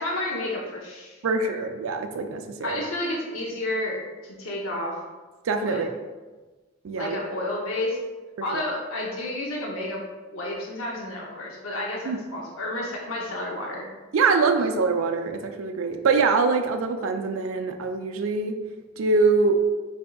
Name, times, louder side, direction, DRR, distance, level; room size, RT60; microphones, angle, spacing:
voice 1, 0.0-1.6 2.6-5.0 5.6-5.8 7.0-8.0 8.4-10.0 10.3-13.9, left 1 dB, 90° left, -2 dB, 0.6 m, -31 dB
voice 2, 1.2-2.8 5.5-5.9 6.8-7.2 8.5-8.6 12.1-12.2 14.1-18.6 19.0-19.6, right 4 dB, 80° right, 6 dB, 0.4 m, -24 dB
4.4 x 3.4 x 2.2 m, 1.3 s
head